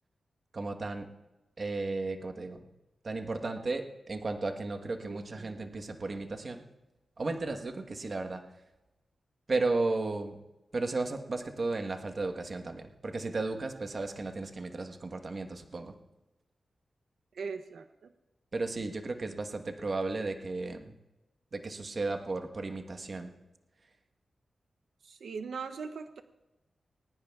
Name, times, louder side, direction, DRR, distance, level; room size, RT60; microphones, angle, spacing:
voice 1, 0.5-1.1 1.6-2.7 3.0-6.6 7.2-8.4 9.5-10.4 10.7-15.9 18.5-20.9 21.5-23.3, right 3 dB, 40° right, 5 dB, 1.1 m, -34 dB
voice 2, 5.0-5.8 17.3-18.1 25.0-26.2, right 5 dB, 85° right, 8 dB, 0.6 m, -41 dB
21.0 x 19.5 x 2.3 m, 1.0 s
wide cardioid pair, 145°, 0 cm